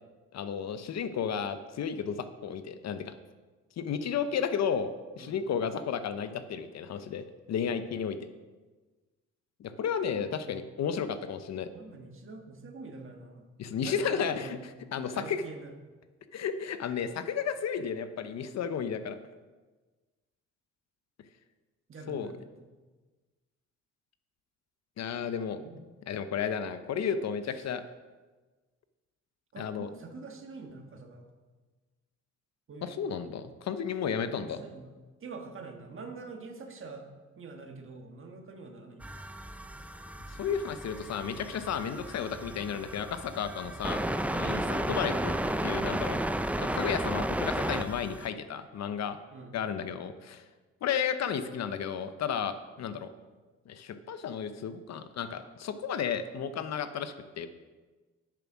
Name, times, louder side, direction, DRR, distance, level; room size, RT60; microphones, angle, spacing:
voice 1, 0.3-3.1 3.8-4.9 5.2-8.3 9.6-11.7 13.6-14.6 14.9-15.4 16.3-19.2 22.1-22.3 25.0-25.6 26.1-27.8 29.6-29.9 32.8-34.6 40.4-44.0 44.3-45.3 45.6-46.2 46.6-49.2 49.5-50.4 50.8-53.1 53.7-57.5, left 7 dB, 60° left, 11 dB, 0.8 m, -33 dB
voice 2, 10.1-10.6 11.7-13.4 13.8-14.7 15.0-15.7 21.9-22.4 25.6-25.9 29.5-31.3 32.7-33.0 34.3-34.9 35.2-37.1 37.4-39.1 49.3-49.5, right 4 dB, 45° right, 4 dB, 1.6 m, -45 dB
sound 1, 39.0-48.3, right 1 dB, 5° right, 0.4 m, -33 dB
8.3 x 7.0 x 6.1 m, 1.3 s
cardioid pair, 90°, 30 cm